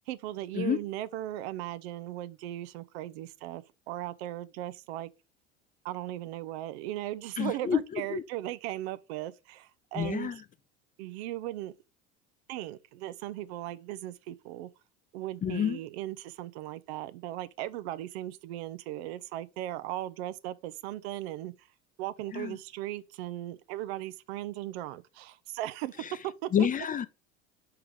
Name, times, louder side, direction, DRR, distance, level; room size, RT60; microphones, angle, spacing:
voice 1, 0.1-5.1 5.8-10.4 11.0-11.7 12.5-14.7 15.1-21.7 22.0-26.5, right 14 dB, 70° right, 0.6 m, -37 dB
voice 2, 7.4-8.2 10.0-10.4 15.4-15.8 22.3-22.6 26.5-27.1, left 8 dB, 25° left, 0.6 m, -29 dB
4.8 x 4.6 x 5.1 m
hypercardioid pair, 80°, 33 cm